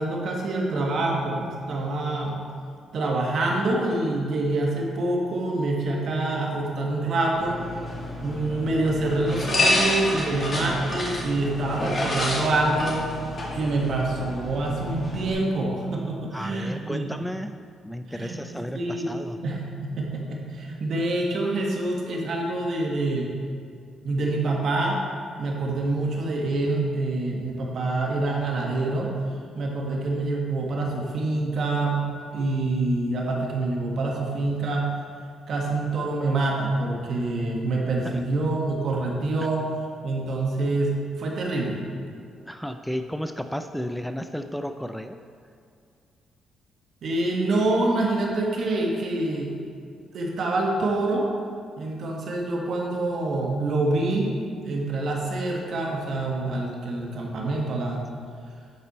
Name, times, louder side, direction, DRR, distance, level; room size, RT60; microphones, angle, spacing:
voice 1, 0.0-2.4 2.9-7.6 8.2-13.1 13.5-17.1 18.1-19.1 19.4-23.4 24.0-25.0 25.4-29.1 29.5-34.9 35.5-39.6 40.0-41.8 47.0-49.5 50.1-51.3 51.8-54.3 54.6-58.1, right 2 dB, 60° right, -1 dB, 1.5 m, -26 dB
sound 1, 7.3-15.3, left 1 dB, 40° left, 2.1 m, -29 dB
voice 2, 16.3-17.6 17.8-19.4 38.0-38.2 42.5-45.2, equal, 5° left, 7 dB, 0.3 m, -33 dB
11.0 x 4.4 x 4.2 m, 2.3 s
cardioid pair, 90°, 0 cm